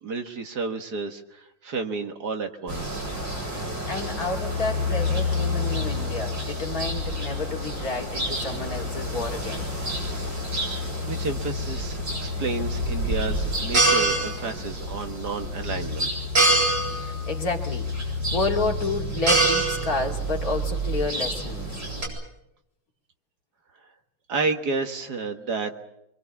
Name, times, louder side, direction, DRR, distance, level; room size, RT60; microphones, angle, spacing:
voice 1, 0.0-3.1 10.7-16.1 24.3-25.8, right 4 dB, 60° right, 5 dB, 2.1 m, -31 dB
sound 1, 2.7-22.1, equal, 80° right, 8.6 m, -27 dB
voice 2, 3.5-9.7 16.8-21.7, left 3 dB, 50° left, 1 dB, 2.9 m, -30 dB
25.5 x 24.0 x 7.3 m, 0.83 s
omnidirectional pair, 2.0 m